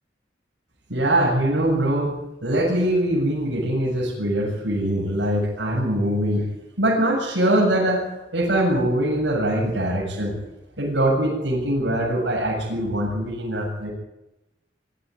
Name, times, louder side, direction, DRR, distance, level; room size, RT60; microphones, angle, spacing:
voice 1, 0.9-6.4 6.8-8.1 8.3-10.4 10.8-13.9, right 1 dB, 80° right, -4 dB, 7.8 m, -22 dB
23.0 x 14.0 x 9.8 m, 0.96 s
head